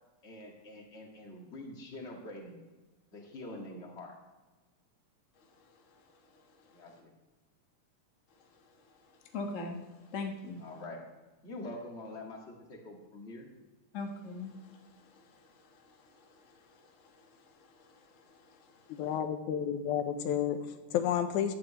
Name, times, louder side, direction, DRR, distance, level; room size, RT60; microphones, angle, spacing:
voice 1, 0.2-2.6 3.1-4.1 6.7-7.1 10.6-11.0 11.4-13.5, left 1 dB, 25° left, 0 dB, 1.8 m, -45 dB
voice 2, 5.4-6.9 8.3-10.6 13.9-19.1, left 3 dB, 65° left, 2 dB, 0.7 m, -45 dB
voice 3, 19.0-21.5, left 9 dB, 80° left, 8 dB, 2.2 m, -31 dB
14.5 x 11.5 x 3.1 m, 1.2 s
omnidirectional pair, 3.5 m